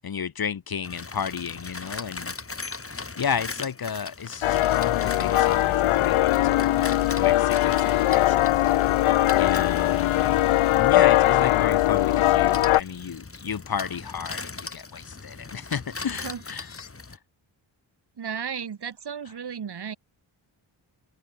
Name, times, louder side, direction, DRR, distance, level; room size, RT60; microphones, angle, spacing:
voice 1, 0.0-2.3 3.2-8.4 9.4-10.4 10.7-16.7, left 7 dB, 50° left, 1.1 m, -33 dB
sound 1, 0.8-17.2, left 3 dB, 25° left, 2.5 m, -39 dB
sound 2, 4.4-12.8, left 15 dB, 90° left, 0.6 m, -21 dB
sound 3, 14.7-16.9, left 7 dB, 70° left, 4.2 m, -55 dB
voice 2, 18.2-20.0, right 7 dB, 55° right, 1.8 m, -34 dB
open air
wide cardioid pair, 120°, 48 cm